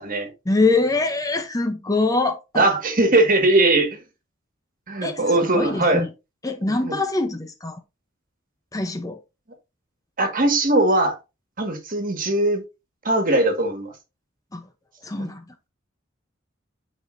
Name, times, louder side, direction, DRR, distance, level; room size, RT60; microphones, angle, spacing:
voice 1, 0.5-2.7 5.0-6.1 6.4-7.8 8.7-9.2 14.5-14.6 15.0-15.7, left 3 dB, 20° left, 0.7 m, -24 dB
voice 2, 2.5-4.0 4.9-6.0 6.8-7.0 10.2-11.1 11.6-12.6 13.0-13.9 15.2-15.3, right 2 dB, 45° right, 1.7 m, -20 dB
10.0 x 4.2 x 2.6 m
head